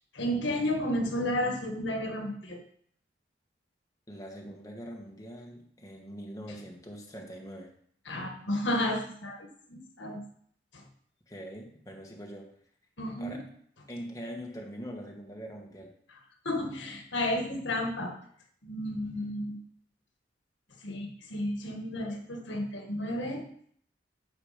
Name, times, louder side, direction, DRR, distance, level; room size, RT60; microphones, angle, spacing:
voice 1, 0.1-2.6 8.1-10.2 10.7-10.8 13.0-13.4 16.4-18.1 18.6-19.6 20.8-23.4, left 1 dB, 80° left, 3 dB, 1.7 m, -32 dB
voice 2, 4.1-7.7 11.3-12.5 13.2-13.4 13.9-15.9, equal, 20° left, 0 dB, 1.8 m, -43 dB
13.5 x 4.9 x 5.2 m, 0.62 s
head